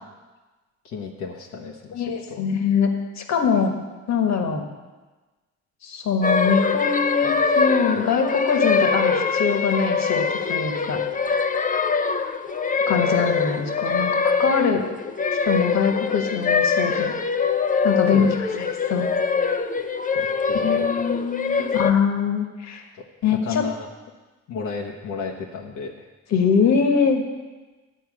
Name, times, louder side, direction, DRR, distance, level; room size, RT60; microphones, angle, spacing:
voice 1, 0.8-2.4 18.1-18.3 20.1-21.0 21.5-21.6 22.9-23.1 23.4-23.9 24.5-26.1, left 5 dB, 85° left, -1 dB, 1.2 m, -33 dB
voice 2, 1.9-2.9 3.2-3.7 4.1-4.6 5.8-11.0 12.9-14.8 15.4-17.1 17.8-18.3 18.6-19.1 19.4-19.5 20.6-22.8 23.2-23.6 26.3-27.2, left 6 dB, 65° left, 4 dB, 1.6 m, -23 dB
sound 1, 6.2-21.9, left 5 dB, 25° left, 0.6 m, -23 dB
12.5 x 4.6 x 8.6 m, 1.2 s
cardioid pair, 90°, 30 cm